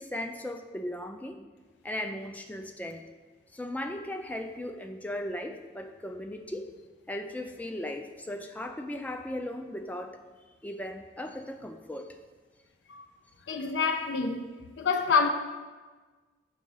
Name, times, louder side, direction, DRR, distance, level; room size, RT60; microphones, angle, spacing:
voice 1, 0.0-1.4 1.8-3.0 3.5-6.7 7.1-10.2 10.6-12.2, left 1 dB, 10° left, 0.3 m, -37 dB
voice 2, 13.5-14.5 14.8-15.3, left 5 dB, 90° left, 0.5 m, -27 dB
6.2 x 3.8 x 5.5 m
head